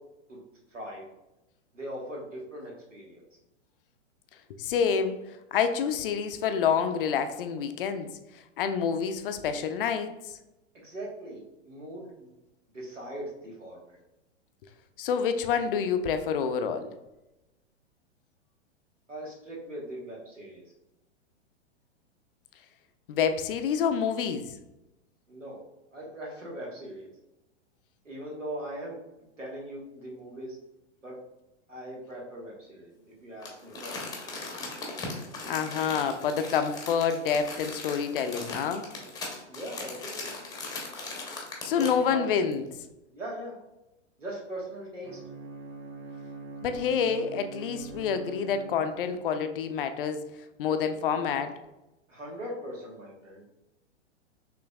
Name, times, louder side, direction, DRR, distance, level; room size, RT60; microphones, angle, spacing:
voice 1, 0.7-1.0 1.7-3.2 10.7-12.3 12.7-14.0 19.1-20.6 25.3-25.6 25.9-27.1 28.0-29.0 29.4-30.6 31.0-31.2 31.7-32.9 33.2-34.3 39.5-40.3 41.7-42.2 43.1-43.5 44.2-45.2 52.1-53.4, right 1 dB, 90° right, -3 dB, 1.5 m, -40 dB
voice 2, 4.6-5.2 5.5-10.4 15.0-16.9 23.1-24.5 35.4-38.9 41.4-42.6 46.6-50.2 50.6-51.5, left 7 dB, 50° left, 9 dB, 0.5 m, -28 dB
Crumpling crinkling, 33.4-42.1 42.5-42.6, left 3 dB, 10° left, 0.9 m, -39 dB
Bowed string instrument, 45.0-49.2, right 3 dB, 15° right, 0.3 m, -43 dB
5.9 x 3.1 x 2.3 m, 0.94 s
figure-of-eight pair, 110°, 36 cm